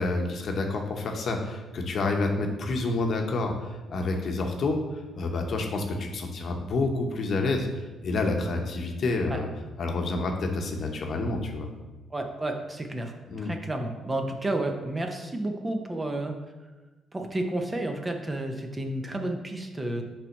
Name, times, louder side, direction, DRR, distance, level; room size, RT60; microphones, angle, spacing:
voice 1, 0.0-9.5 9.8-11.7 13.3-13.5, left 2 dB, 55° left, 3 dB, 0.8 m, -28 dB
voice 2, 12.1-16.3 17.1-20.0, right 1 dB, 20° right, 4 dB, 0.7 m, -31 dB
5.6 x 3.5 x 5.3 m, 1.2 s
cardioid pair, 90°, 0 cm